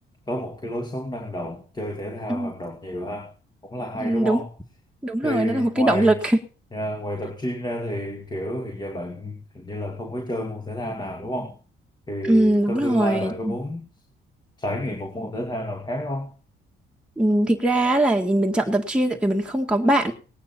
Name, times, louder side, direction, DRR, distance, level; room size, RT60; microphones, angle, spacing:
voice 1, 0.3-3.3 3.6-4.5 5.2-6.2 6.7-11.6 12.1-13.8 14.6-16.4, equal, 20° left, 4 dB, 2.4 m, -30 dB
voice 2, 4.0-4.4 5.0-6.4 12.2-13.5 17.2-20.1, right 1 dB, 5° right, 1 dB, 1.9 m, -21 dB
19.5 x 9.3 x 4.3 m, 0.36 s
cardioid pair, 90°, 20 cm